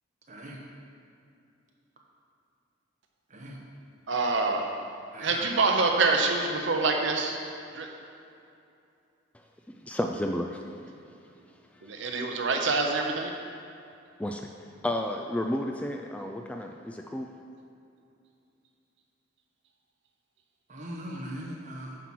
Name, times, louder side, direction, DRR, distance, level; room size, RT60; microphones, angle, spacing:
voice 1, 0.3-0.6 3.3-3.6 5.1-5.4 20.7-22.0, right 1 dB, 40° right, -2 dB, 1.2 m, -39 dB
voice 2, 4.1-4.7 5.2-7.4 7.7-7.9 11.8-13.3, right 3 dB, 65° right, 2 dB, 0.8 m, -26 dB
voice 3, 9.7-10.6 14.2-14.5 14.8-17.3, left 1 dB, 5° left, 2 dB, 0.3 m, -32 dB
9.1 x 4.5 x 6.1 m, 2.6 s
head